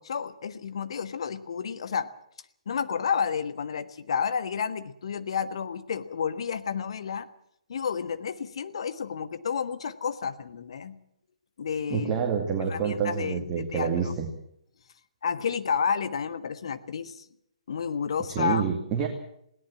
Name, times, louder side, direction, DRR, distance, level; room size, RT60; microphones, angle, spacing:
voice 1, 0.0-2.1 2.6-7.3 7.7-11.0 11.6-12.1 12.7-14.1 15.2-17.2 17.7-18.7, left 6 dB, 50° left, 11 dB, 1.5 m, -31 dB
voice 2, 11.9-14.3 18.3-19.1, right 7 dB, 20° right, 2 dB, 2.3 m, -27 dB
20.5 x 17.5 x 7.5 m, 0.72 s
figure-of-eight pair, 130°, 4 cm